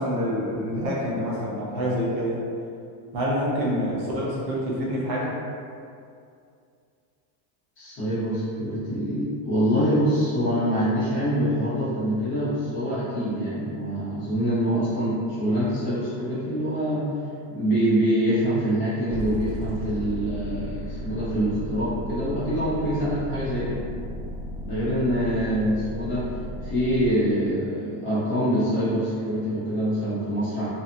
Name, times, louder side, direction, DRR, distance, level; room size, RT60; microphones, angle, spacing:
voice 1, 0.0-2.4 3.1-5.4 25.1-25.3, equal, 55° right, -5 dB, 0.6 m, -27 dB
voice 2, 7.8-17.1 17.5-23.8 24.6-26.3 26.6-30.7, equal, 25° left, -11 dB, 0.8 m, -25 dB
sound 1, 19.1-27.1, equal, 5° right, 1.0 m, -34 dB
2.7 x 2.4 x 2.5 m, 2.4 s
cardioid pair, 170°, 50 cm